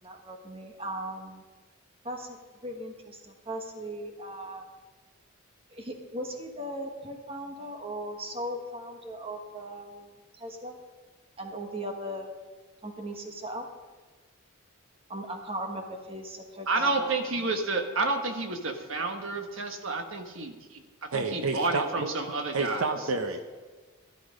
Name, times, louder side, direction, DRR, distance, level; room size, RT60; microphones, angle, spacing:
voice 1, 0.0-1.4 2.0-4.6 5.7-10.8 11.4-12.3 12.8-13.7 15.1-17.2, right 1 dB, 25° right, 3 dB, 1.5 m, -38 dB
voice 2, 16.7-20.5 21.0-22.9, right 3 dB, 65° right, 5 dB, 1.4 m, -30 dB
voice 3, 21.1-22.1 22.5-23.5, right 3 dB, 85° right, 7 dB, 0.9 m, -30 dB
13.0 x 12.0 x 5.2 m, 1.3 s
head